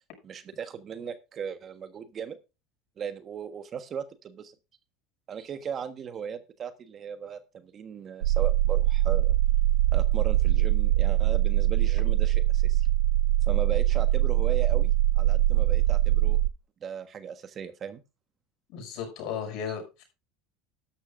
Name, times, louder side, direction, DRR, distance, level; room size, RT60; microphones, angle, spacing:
voice 1, 0.2-2.4 3.0-4.5 5.3-9.4 9.9-12.9 13.4-16.4 16.8-18.0, right 7 dB, 40° right, 10 dB, 1.4 m, -37 dB
sound 1, 8.2-16.5, right 14 dB, 90° right, 0.5 m, -23 dB
voice 2, 18.7-20.0, left 7 dB, 60° left, 3 dB, 6.7 m, -35 dB
13.0 x 11.5 x 2.6 m, 0.28 s
supercardioid pair, 95°, 0 cm